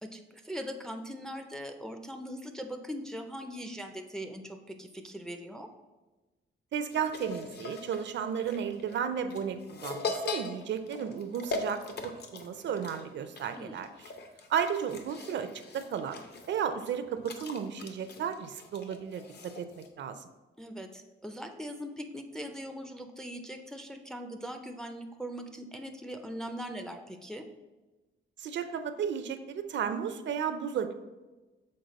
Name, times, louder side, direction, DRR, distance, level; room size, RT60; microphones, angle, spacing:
voice 1, 0.0-5.7 13.6-13.8 20.6-27.4, equal, 5° left, 4 dB, 0.3 m, -41 dB
voice 2, 6.7-13.9 14.5-15.5 15.7-16.2 16.5-19.2 19.6-19.7 20.0-20.2 28.4-30.9, right 7 dB, 65° right, 10 dB, 0.5 m, -33 dB
sound 1, 6.9-19.9, left 3 dB, 55° left, 0.7 m, -41 dB
6.5 x 4.1 x 4.0 m, 1.2 s
wide cardioid pair, 160°, 20 cm